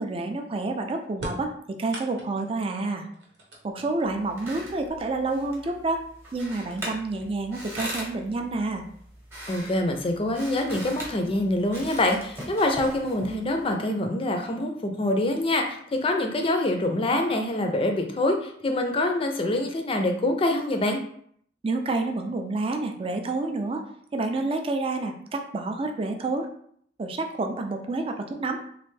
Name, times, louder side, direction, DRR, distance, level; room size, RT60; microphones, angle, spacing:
voice 1, 0.0-3.1 3.6-6.0 6.3-8.8 21.6-23.8 24.1-26.5 27.0-28.6, right 3 dB, 30° right, 4 dB, 0.4 m, -29 dB
sound 1, 1.1-2.6 3.1-4.3 5.3-5.4 6.4-6.5 7.0-7.5, right 1 dB, 80° right, 0.9 m, -40 dB
sound 2, 4.0-13.7, equal, 15° right, 0.8 m, -40 dB
voice 2, 9.5-21.0, left 1 dB, 30° left, 4 dB, 0.4 m, -25 dB
3.2 x 2.5 x 3.2 m, 0.64 s
head